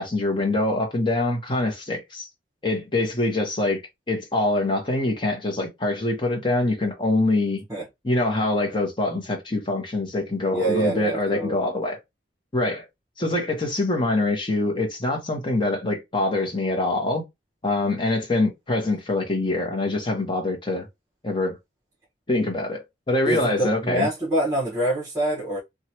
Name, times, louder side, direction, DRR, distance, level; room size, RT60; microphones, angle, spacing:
voice 1, 0.0-2.3 2.6-3.8 4.1-7.6 8.0-12.0 12.5-12.8 13.2-17.2 17.6-20.9 21.2-21.6 22.3-24.1, left 2 dB, 25° left, 0.8 m, -24 dB
voice 2, 10.5-11.6 23.2-25.6, right 1 dB, 20° right, 1.1 m, -25 dB
3.0 x 2.3 x 2.8 m
head